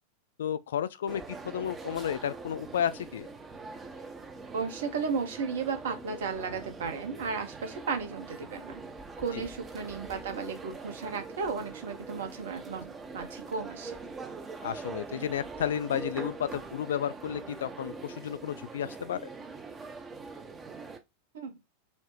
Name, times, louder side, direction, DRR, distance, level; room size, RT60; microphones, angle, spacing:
voice 1, 0.4-3.3 9.3-9.5 14.6-19.2, left 9 dB, 60° left, 0.3 m, -32 dB
sound 1, 1.1-21.0, right 4 dB, 20° right, 0.5 m, -43 dB
voice 2, 4.5-8.8 9.2-14.0 21.3-21.5, right 5 dB, 60° right, 0.7 m, -34 dB
4.2 x 2.0 x 3.1 m
figure-of-eight pair, 90°, 0 cm